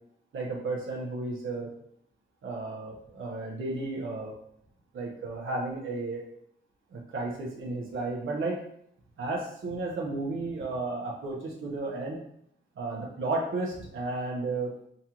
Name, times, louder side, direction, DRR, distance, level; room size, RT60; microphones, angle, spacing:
voice 1, 0.3-1.7 2.4-4.3 4.9-6.2 6.9-8.6 9.2-12.2 12.8-14.7, right 2 dB, 85° right, -3 dB, 0.9 m, -33 dB
5.2 x 2.5 x 2.9 m, 0.68 s
wide cardioid pair, 160°, 20 cm